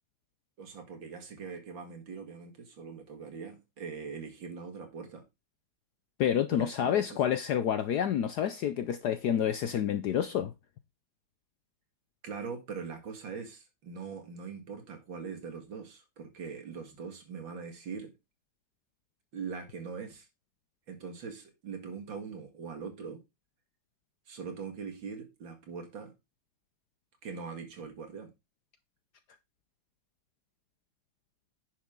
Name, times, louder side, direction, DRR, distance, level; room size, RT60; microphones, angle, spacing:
voice 1, 0.6-5.2 6.5-7.2 12.2-18.1 19.3-20.3 20.9-23.2 24.3-26.1 27.2-28.3, right 5 dB, 65° right, 2.6 m, -42 dB
voice 2, 6.2-10.5, left 9 dB, 70° left, 1.0 m, -28 dB
10.0 x 6.4 x 3.7 m
omnidirectional pair, 2.3 m